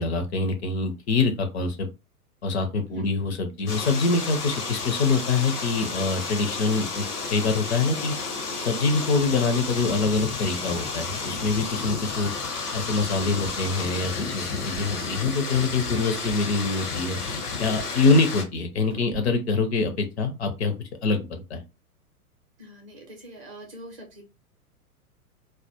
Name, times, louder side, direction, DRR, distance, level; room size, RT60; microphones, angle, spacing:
voice 1, 0.0-1.9 2.4-7.0 7.3-8.1 8.6-12.3 12.7-17.2 17.6-20.7 21.0-21.6, left 3 dB, 45° left, 6 dB, 0.5 m, -25 dB
sound 1, 3.7-18.4, left 4 dB, 80° left, 0.8 m, -32 dB
sound 2, 13.2-13.8 14.5-14.9 16.2-16.5 17.6-18.0 18.9-19.3, right 9 dB, 70° right, 0.6 m, -42 dB
voice 2, 22.6-24.2, equal, 20° right, -1 dB, 0.5 m, -43 dB
2.1 x 2.1 x 2.8 m, 0.27 s
figure-of-eight pair, 105°, 46 cm